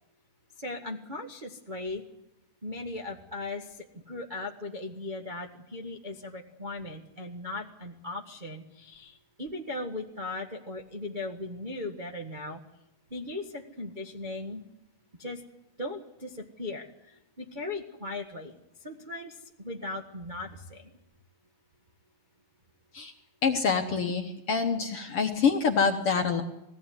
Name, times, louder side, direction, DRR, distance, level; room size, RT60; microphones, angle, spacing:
voice 1, 0.6-2.0 2.6-12.6 13.1-14.6 15.2-15.4 15.8-18.5 18.8-20.9, left 2 dB, 30° right, -1 dB, 0.8 m, -38 dB
voice 2, 23.4-26.4, left 5 dB, 55° left, 5 dB, 1.7 m, -26 dB
20.5 x 16.5 x 9.7 m, 0.88 s
omnidirectional pair, 3.9 m